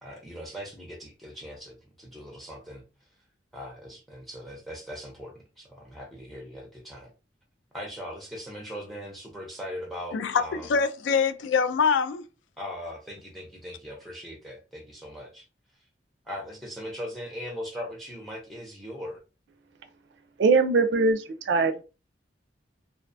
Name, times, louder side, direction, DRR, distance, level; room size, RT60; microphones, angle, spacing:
voice 1, 0.0-2.8 3.5-7.1 7.7-10.7 12.6-15.5 16.3-19.2, equal, ahead, 0.5 m, -40 dB
voice 2, 10.1-12.2, left 5 dB, 90° left, 0.3 m, -24 dB
voice 3, 20.4-21.8, right 4 dB, 70° right, 0.4 m, -22 dB
2.4 x 2.2 x 2.5 m
head